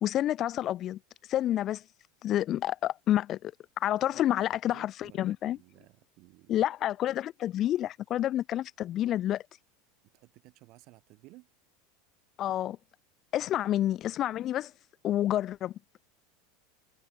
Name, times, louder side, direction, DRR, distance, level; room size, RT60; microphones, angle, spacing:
voice 1, 0.0-1.0 1.3-1.8 2.2-5.6 6.5-9.4 12.4-12.8 13.3-14.7 15.0-15.7, left 12 dB, 45° left, 0.4 m, -29 dB
voice 2, 4.6-6.6 10.1-11.5 13.4-13.5, right 22 dB, 55° right, 3.1 m, -56 dB
hypercardioid pair, 90°, 0 cm